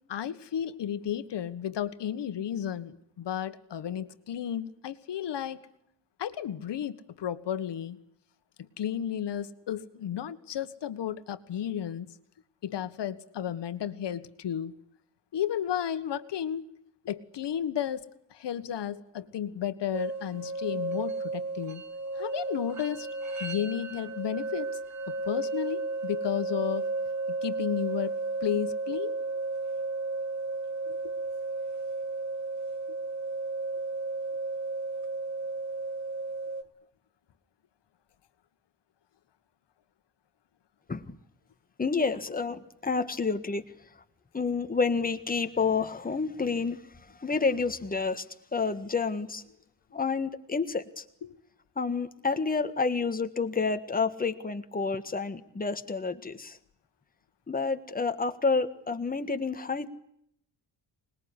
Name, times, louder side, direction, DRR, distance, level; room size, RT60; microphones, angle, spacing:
voice 1, 0.1-5.6 6.2-8.0 8.8-12.1 12.6-14.7 15.3-16.7 17.0-18.0 18.4-21.8 22.2-23.1 23.4-24.7 25.1-26.8 27.4-28.1 28.4-29.2 30.9-31.0, left 10 dB, 70° left, 11 dB, 1.7 m, -33 dB
sound 1, 19.9-36.6, right 3 dB, 40° right, 2.1 m, -33 dB
voice 2, 41.8-43.6 44.3-46.8 47.2-48.2 48.5-49.4 49.9-51.0 51.8-56.6 57.5-59.9, left 4 dB, 20° left, 8 dB, 1.6 m, -29 dB
25.5 x 21.0 x 9.9 m, 0.74 s
wide cardioid pair, 155°, 43 cm